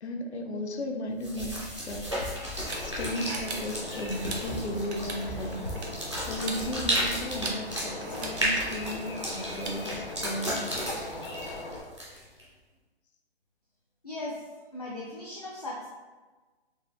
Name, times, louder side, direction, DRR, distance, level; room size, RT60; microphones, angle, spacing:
voice 1, 0.0-2.2 2.8-5.7 6.2-10.9, left 1 dB, 80° left, 4 dB, 0.6 m, -35 dB
sound 1, 1.2-12.4, equal, 30° right, 0.4 m, -34 dB
sound 2, 1.8-10.3, right 3 dB, 75° right, 0.8 m, -42 dB
sound 3, 2.6-11.8, left 2 dB, 55° left, 1.0 m, -40 dB
voice 2, 14.0-14.4 14.7-15.9, left 2 dB, 40° left, -6 dB, 0.4 m, -37 dB
4.0 x 2.5 x 2.6 m, 1.3 s
hypercardioid pair, 180°, 33 cm